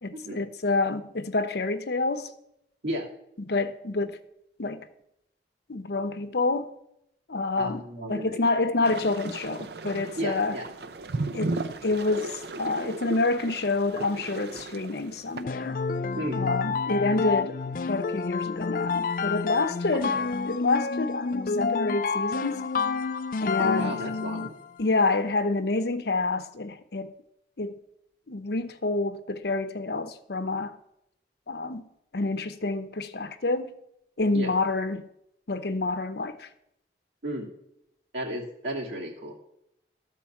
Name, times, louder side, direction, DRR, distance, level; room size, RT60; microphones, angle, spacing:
voice 1, 0.0-2.3 3.4-4.2 4.6-4.9 5.7-6.7 7.3-7.8 8.1-10.6 11.3-15.8 16.4-20.2 20.5-22.6 23.4-24.0 24.8-27.1 27.6-27.8 28.3-30.8 31.5-31.9 32.1-33.7 34.2-35.1 35.5-36.5, left 3 dB, 70° left, 0.7 m, -28 dB
voice 2, 7.6-8.4 10.2-10.7 16.2-16.5 20.0-20.1 23.6-24.6 34.3-34.5 37.2-37.5 38.1-39.3, right 1 dB, 85° right, 2.5 m, -33 dB
sound 1, 8.8-15.4, right 3 dB, 70° right, 0.6 m, -36 dB
sound 2, 15.5-24.7, left 4 dB, 50° left, 0.4 m, -29 dB
12.5 x 4.5 x 7.1 m
head